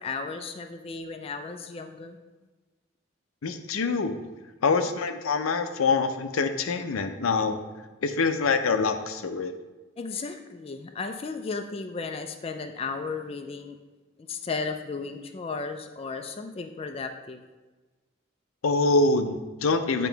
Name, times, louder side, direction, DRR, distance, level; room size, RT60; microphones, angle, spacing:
voice 1, 0.0-2.2 10.0-13.8 14.3-17.4, left 4 dB, 30° left, 6 dB, 0.3 m, -34 dB
voice 2, 3.4-4.2 4.6-7.6 8.0-9.5 18.6-20.1, left 4 dB, 90° left, 8 dB, 0.5 m, -25 dB
8.9 x 3.0 x 4.5 m, 1.2 s
head